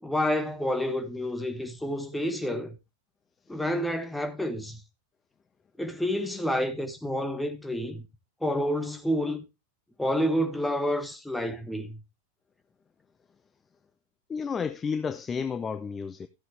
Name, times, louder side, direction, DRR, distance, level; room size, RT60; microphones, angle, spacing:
voice 1, 0.0-2.8 3.5-4.8 5.8-8.1 8.4-9.4 10.0-12.0, equal, 5° left, 1.5 m, -29 dB
voice 2, 14.3-16.3, left 6 dB, 20° left, 0.6 m, -31 dB
14.0 x 8.0 x 3.2 m
figure-of-eight pair, 90°, 0 cm